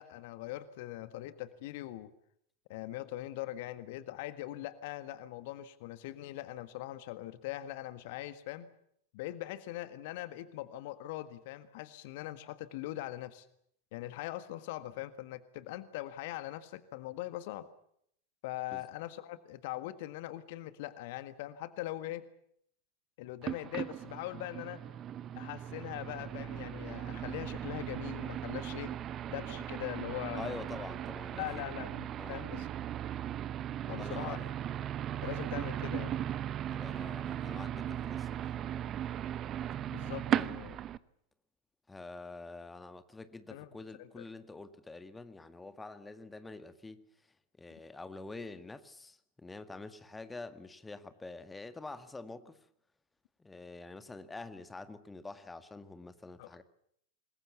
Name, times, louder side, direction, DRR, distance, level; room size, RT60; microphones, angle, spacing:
voice 1, 0.0-2.1 2.7-8.7 9.1-13.5 13.9-17.7 18.4-22.2 23.2-24.8 25.3-28.9 29.3-30.6 31.4-32.7 33.9-34.4 35.2-36.2 39.9-40.8 43.5-43.7 44.0-44.2 56.4-56.6, left 15 dB, 50° left, 13 dB, 1.7 m, -41 dB
sound 1, 23.4-41.0, right 10 dB, 30° right, 1.0 m, -37 dB
voice 2, 30.4-31.9 32.2-32.4 33.8-34.5 36.7-38.6 40.4-40.5 41.9-47.0 47.6-52.6 53.4-56.6, left 3 dB, 10° left, 10 dB, 2.0 m, -46 dB
27.0 x 21.5 x 7.2 m, 0.70 s
figure-of-eight pair, 90°, 0 cm